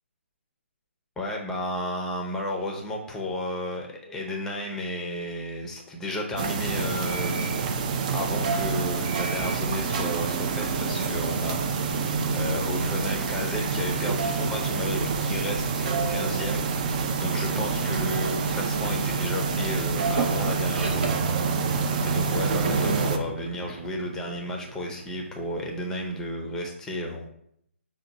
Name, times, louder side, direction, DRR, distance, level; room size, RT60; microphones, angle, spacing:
voice 1, 1.2-7.5 8.1-12.0 12.3-16.7 17.2-21.2 22.0-27.3, left 1 dB, 10° left, 0 dB, 0.6 m, -33 dB
sound 1, 6.4-23.2, right 5 dB, 35° right, 0.5 m, -27 dB
sound 2, 14.0-17.3 18.2-18.6 18.9-22.1 22.5-26.0, right 3 dB, 50° right, 0.8 m, -38 dB
5.8 x 2.2 x 3.9 m, 0.72 s
figure-of-eight pair, 145°, 7 cm